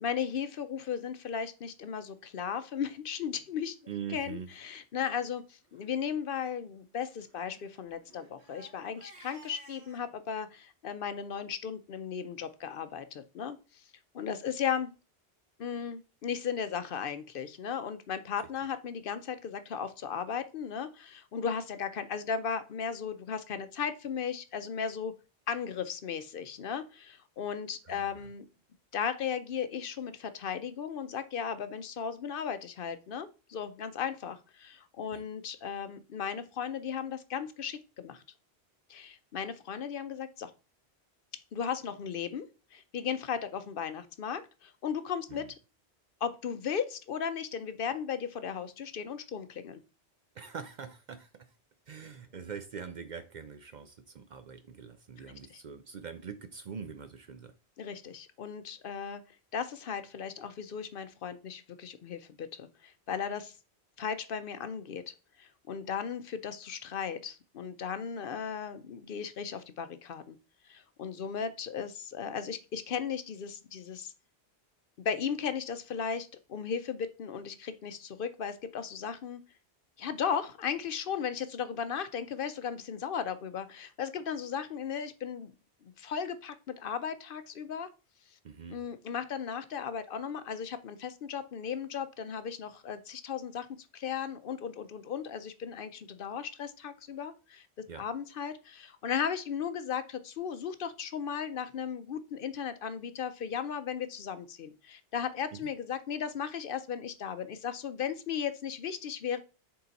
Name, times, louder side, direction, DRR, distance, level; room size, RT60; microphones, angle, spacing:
voice 1, 0.0-3.8 4.1-13.8 14.1-14.9 15.6-25.1 25.5-28.4 28.9-38.2 38.9-40.5 41.5-45.4 46.2-49.8 55.5-55.6 57.8-59.2 59.5-63.5 64.0-70.4 70.6-74.1 75.0-79.4 80.0-85.5 85.8-87.9 88.7-93.7 93.9-97.7 98.0-109.4, left 7 dB, 60° left, 11 dB, 0.7 m, -36 dB
Crying sobbing, 3.2-3.5 4.1-4.2 4.5-4.6 5.0-5.2 5.6-5.9 7.0-10.1, right 2 dB, 80° right, 1.5 m, -56 dB
voice 2, 3.9-4.5 27.9-28.3 35.1-35.2 45.3-45.5 50.3-51.5 51.9-57.5 88.4-88.8 97.9-98.1 105.5-105.7, right 6 dB, 55° right, 10 dB, 0.6 m, -43 dB
6.7 x 3.8 x 4.0 m, 0.32 s
omnidirectional pair, 1.1 m